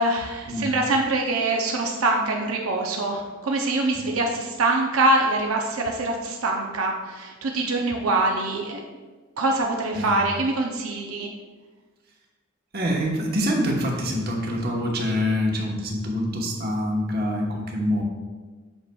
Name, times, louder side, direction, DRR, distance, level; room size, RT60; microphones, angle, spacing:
voice 1, 0.0-8.8 9.4-11.3, right 2 dB, 85° right, 1 dB, 0.6 m, -24 dB
voice 2, 12.7-18.0, equal, 45° right, -1 dB, 1.0 m, -25 dB
7.9 x 5.9 x 2.3 m, 1.4 s
head